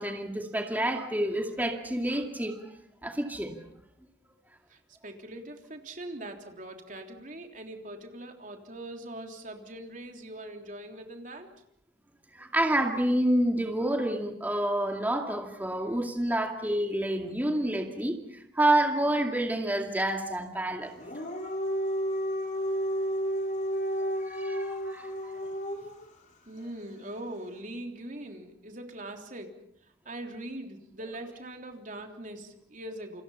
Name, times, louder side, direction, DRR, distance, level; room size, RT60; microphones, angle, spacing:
voice 1, 0.0-2.6 3.0-3.6 12.4-18.2 18.5-20.9 24.3-25.1, right 1 dB, 10° right, 3 dB, 2.4 m, -28 dB
voice 2, 4.7-11.5 26.5-29.5 30.1-33.2, right 1 dB, 45° right, 4 dB, 3.5 m, -42 dB
Dog, 20.9-26.1, equal, 45° left, 4.2 m, -31 dB
29.0 x 26.5 x 5.7 m, 0.72 s
head